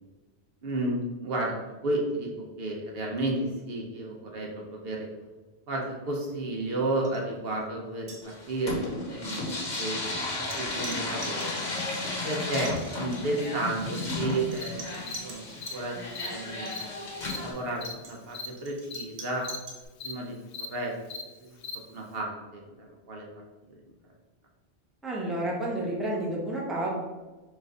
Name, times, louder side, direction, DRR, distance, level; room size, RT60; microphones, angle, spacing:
voice 1, 0.6-1.6 1.8-2.3 2.6-5.1 5.7-10.0 10.5-11.6 12.2-15.4 15.7-16.0 16.3-16.8 17.4-19.4 20.0-20.4 20.7-20.9 21.4-21.6 21.9-23.3, right 2 dB, 65° right, -1 dB, 1.0 m, -32 dB
sound 1, 7.0-7.2 7.5-7.7 8.0-8.7 9.5-15.8 16.5-19.9, right 2 dB, 90° right, 1.2 m, -47 dB
sound 2, 8.2-17.5, left 2 dB, 45° left, 1.0 m, -34 dB
Cricket, 13.9-14.1 14.6-14.7 15.1-15.2 15.6-15.7 16.1-16.3 16.7-16.8 17.2-17.4 17.8-17.9 18.3-18.5 18.9-19.0 19.4-19.6 20.0-20.1 20.5-20.7 21.1-21.2 21.6-21.8, left 4 dB, 85° left, 0.9 m, -37 dB
voice 2, 25.0-26.9, right 1 dB, ahead, -4 dB, 0.8 m, -30 dB
4.5 x 2.5 x 4.4 m, 1.2 s
omnidirectional pair, 1.1 m